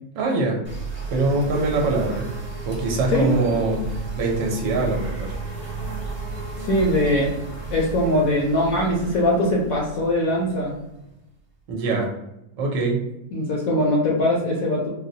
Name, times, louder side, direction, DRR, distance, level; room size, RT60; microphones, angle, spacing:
voice 1, 0.1-0.6 1.1-2.3 2.7-5.3 11.7-12.1 12.6-13.0, right 3 dB, 85° right, 0 dB, 1.2 m, -23 dB
sound 1, 0.6-11.3, right 4 dB, 10° right, 0.8 m, -33 dB
voice 2, 6.6-7.3 7.7-10.7 13.3-14.9, left 1 dB, 65° left, -3 dB, 0.9 m, -21 dB
4.0 x 2.0 x 2.7 m, 0.89 s
omnidirectional pair, 1.9 m